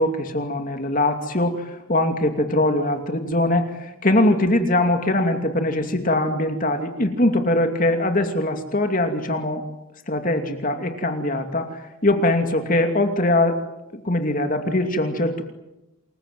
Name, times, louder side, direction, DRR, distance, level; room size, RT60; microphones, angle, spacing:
voice 1, 0.0-1.6 1.9-9.6 10.1-13.6 13.9-15.4, left 1 dB, 40° left, 6 dB, 2.6 m, -22 dB
28.5 x 21.5 x 9.3 m, 0.92 s
head